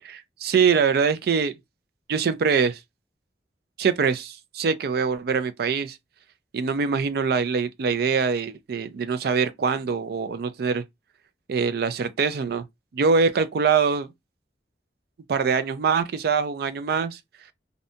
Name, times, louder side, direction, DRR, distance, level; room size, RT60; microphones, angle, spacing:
voice 1, 0.0-1.5 2.1-2.8 3.8-6.0 6.5-10.8 11.5-12.6 12.9-14.1 15.3-17.2, right 5 dB, 60° right, 0.4 m, -23 dB
2.6 x 2.1 x 2.6 m
head